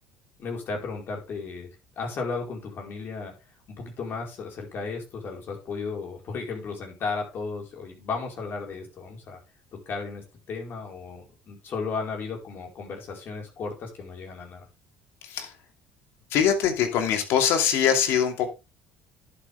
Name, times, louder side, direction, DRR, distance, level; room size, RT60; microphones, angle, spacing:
voice 1, 0.4-1.7 2.0-3.3 3.8-9.4 9.9-14.6, left 4 dB, 50° left, 1 dB, 4.8 m, -34 dB
voice 2, 16.3-18.5, left 8 dB, 65° left, 5 dB, 2.6 m, -23 dB
11.0 x 8.2 x 3.5 m, 0.27 s
hypercardioid pair, 75°, 5 cm